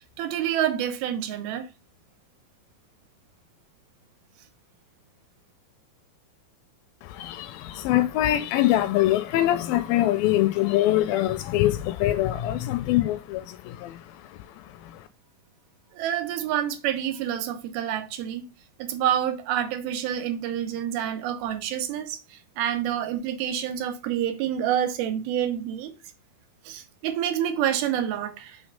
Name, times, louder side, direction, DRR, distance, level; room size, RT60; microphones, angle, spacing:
voice 1, 0.2-1.7 15.9-18.4 18.8-25.9 26.7-28.6, right 10 dB, 85° right, 2.7 m, -28 dB
voice 2, 7.0-15.1, left 14 dB, 80° left, 2.1 m, -24 dB
6.2 x 3.3 x 5.0 m
omnidirectional pair, 4.3 m